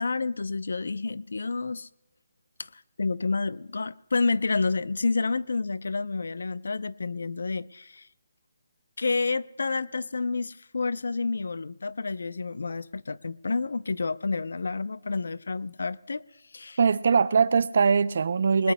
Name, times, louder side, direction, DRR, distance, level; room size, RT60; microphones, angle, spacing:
voice 1, 0.0-1.9 2.6-8.1 9.0-16.2 16.5-16.8 18.6-18.7, left 4 dB, 80° left, 0.5 m, -29 dB
voice 2, 16.8-18.7, right 5 dB, 50° right, 0.4 m, -21 dB
21.0 x 20.5 x 2.2 m
hypercardioid pair, 175°, 0 cm